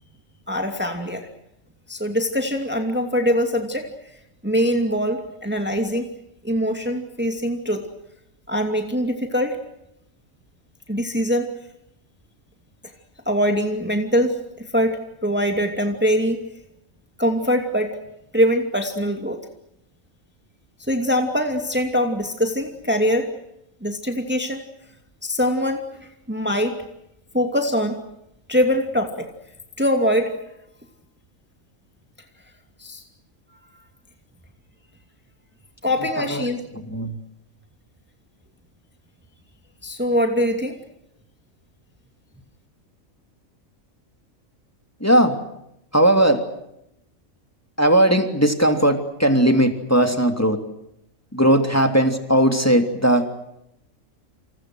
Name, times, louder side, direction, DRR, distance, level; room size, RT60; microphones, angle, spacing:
voice 1, 0.5-1.3 1.9-3.9 4.4-6.0 6.4-7.9 8.5-9.6 10.9-11.5 13.3-16.4 17.2-18.0 18.3-19.4 20.8-23.3 23.8-24.6 25.2-25.8 26.3-26.8 27.3-28.0 28.5-29.3 29.8-30.3 32.8-33.0 35.8-36.6 39.8-40.8, equal, 5° right, 4 dB, 2.6 m, -22 dB
voice 2, 36.7-37.1 45.0-45.4 45.9-46.4 47.8-50.6 51.3-53.2, right 1 dB, 10° left, 6 dB, 3.0 m, -18 dB
29.5 x 28.5 x 6.4 m, 0.83 s
omnidirectional pair, 1.5 m